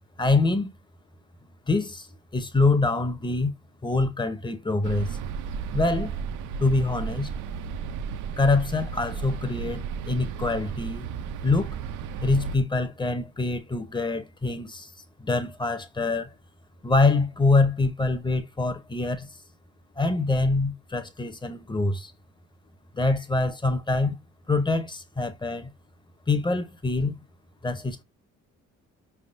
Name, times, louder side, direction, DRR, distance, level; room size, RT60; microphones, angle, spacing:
voice 1, 0.2-0.7 1.7-2.1 2.3-3.5 3.8-5.2 5.7-6.2 6.6-7.3 8.4-11.1 11.4-11.8 12.2-14.9 15.2-16.3 16.8-19.3 20.0-22.1 22.9-24.2 24.5-25.7 26.3-27.1 27.6-28.0, left 3 dB, 15° left, 0.7 m, -25 dB
sound 1, 4.8-12.6, right 6 dB, 90° right, 0.5 m, -34 dB
5.0 x 3.5 x 2.5 m
cardioid pair, 90°, 30 cm